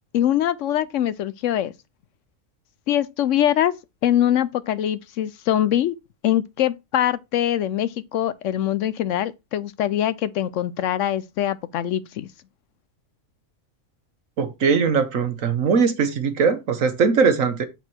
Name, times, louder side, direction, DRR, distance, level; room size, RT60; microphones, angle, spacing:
voice 1, 0.1-1.7 2.9-3.7 4.0-5.9 6.2-12.3, left 11 dB, 70° left, 0.9 m, -23 dB
voice 2, 14.4-17.7, right 5 dB, 75° right, 1.4 m, -20 dB
8.0 x 4.3 x 4.3 m
omnidirectional pair, 1.4 m